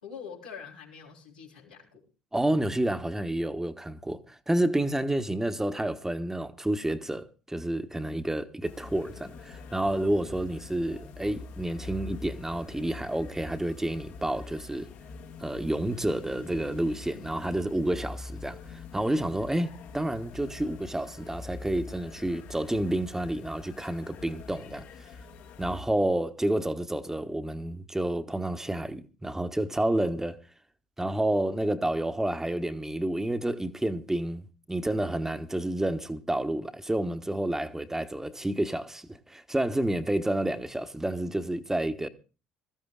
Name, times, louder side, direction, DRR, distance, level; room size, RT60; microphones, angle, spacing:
voice 1, 0.0-2.0, left 6 dB, 90° left, 3.7 m, -44 dB
voice 2, 2.3-14.9 15.4-24.9 25.6-30.4 31.0-42.1, right 1 dB, 10° right, 1.2 m, -29 dB
sound 1, 8.6-25.8, left 4 dB, 65° left, 1.7 m, -44 dB
23.0 x 14.0 x 2.4 m
hypercardioid pair, 55°, 4 cm